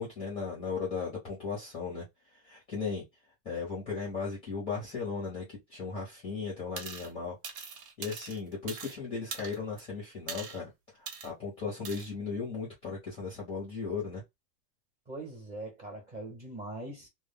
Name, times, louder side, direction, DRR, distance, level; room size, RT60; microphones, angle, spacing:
voice 1, 0.0-2.0 2.3-3.0 3.4-7.4 8.0-14.2, left 5 dB, 10° left, 0.6 m, -36 dB
sound 1, 6.8-7.1 7.4-9.0 9.3-9.8 10.3-10.6 11.1-11.3 11.8-12.1, right 6 dB, 80° right, 1.0 m, -41 dB
voice 2, 15.1-17.1, right 2 dB, 20° right, 0.9 m, -41 dB
2.1 x 2.1 x 3.4 m
supercardioid pair, 170°, 49 cm